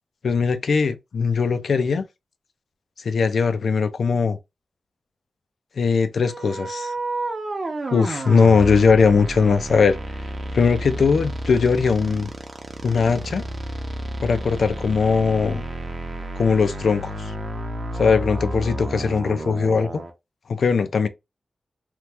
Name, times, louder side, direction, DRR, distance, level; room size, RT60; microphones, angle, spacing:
voice 1, 0.2-2.1 3.0-4.4 5.8-6.9 7.9-10.0 10.5-12.3 12.8-13.5 14.2-15.6 16.4-17.3 18.0-20.0 20.5-21.1, left 5 dB, 85° left, 0.4 m, -20 dB
sound 1, 6.2-20.1, right 1 dB, 45° right, 0.7 m, -31 dB
2.9 x 2.0 x 3.3 m
wide cardioid pair, 115°, 0 cm